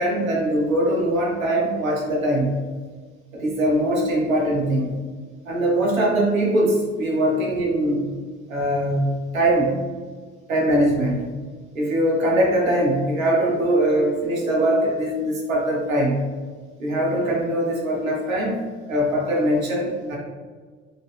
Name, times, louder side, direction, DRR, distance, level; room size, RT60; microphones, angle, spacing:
voice 1, 0.0-2.7 3.3-5.0 5.4-8.0 8.5-9.8 10.5-11.3 11.7-16.3 16.8-18.6 18.9-20.2, right 1 dB, 80° right, -3 dB, 1.1 m, -21 dB
4.0 x 2.8 x 3.4 m, 1.5 s
figure-of-eight pair, 60°, 40 cm